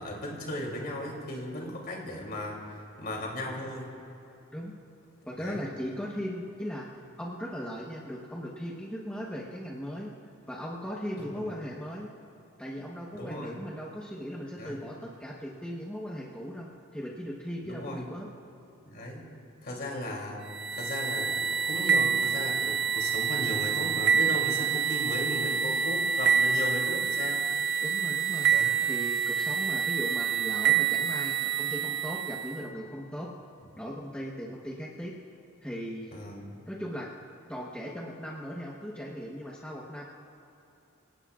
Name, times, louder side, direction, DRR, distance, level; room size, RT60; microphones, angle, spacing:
voice 1, 0.0-3.9 5.4-5.6 11.2-11.5 13.1-13.5 14.6-14.8 17.6-18.0 18.9-19.2 19.6-20.4 20.7-27.5 28.5-28.8 36.1-36.6, left 1 dB, 45° left, -1 dB, 3.0 m, -36 dB
voice 2, 5.3-10.1 10.5-12.1 12.6-18.3 27.8-28.5 28.8-33.3 33.8-35.2 35.6-36.1 36.7-37.1 37.5-40.1, equal, 5° left, -4 dB, 1.1 m, -38 dB
sound 1, 20.5-32.6, right 7 dB, 55° right, 0.7 m, -27 dB
27.5 x 18.0 x 2.5 m, 2.9 s
head